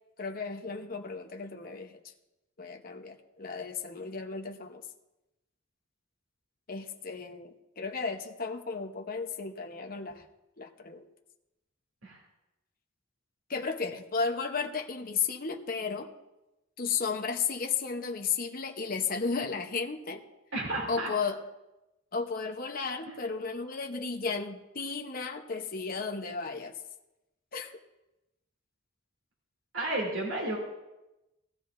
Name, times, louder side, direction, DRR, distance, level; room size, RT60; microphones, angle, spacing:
voice 1, 0.2-2.0 2.6-4.8 6.7-10.2 10.6-11.0 13.5-16.1 16.8-20.2 20.9-21.4 22.1-26.8 27.5-27.7, left 5 dB, 45° left, 4 dB, 0.9 m, -34 dB
voice 2, 20.5-21.1 23.1-23.2 29.7-30.6, right 2 dB, 80° right, -3 dB, 2.9 m, -32 dB
18.5 x 13.0 x 2.6 m, 0.97 s
head